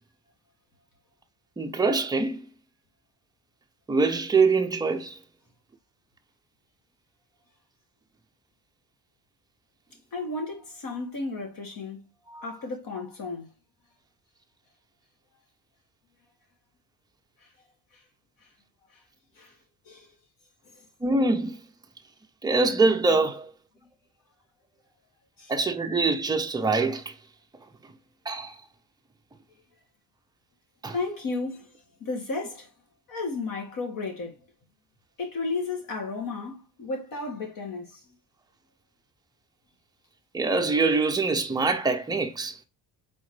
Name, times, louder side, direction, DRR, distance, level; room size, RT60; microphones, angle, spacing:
voice 1, 1.6-2.4 3.9-5.2 12.3-12.5 21.0-21.6 22.4-23.5 25.5-27.0 28.3-28.6 30.8-31.0 40.3-42.7, right 3 dB, 10° right, 0.4 m, -24 dB
voice 2, 10.1-12.1 12.4-13.5 19.4-19.5 19.9-20.1 25.4-25.5 30.9-31.7 32.0-32.7 33.1-34.4 35.2-38.0, left 3 dB, 55° left, 1.8 m, -33 dB
4.3 x 3.8 x 3.1 m
cardioid pair, 175°, 40 cm